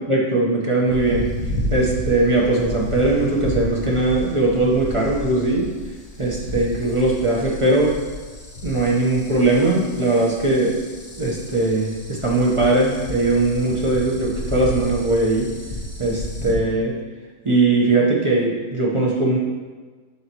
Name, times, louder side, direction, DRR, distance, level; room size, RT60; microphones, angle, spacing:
voice 1, 0.1-1.3 1.7-5.7 6.2-7.9 8.6-10.7 11.2-15.5 16.0-16.9 17.4-19.4, right 2 dB, 35° right, -4 dB, 0.4 m, -20 dB
sound 1, 0.9-16.5, left 1 dB, 45° left, 1.6 m, -32 dB
10.5 x 4.2 x 3.0 m, 1.4 s
omnidirectional pair, 2.2 m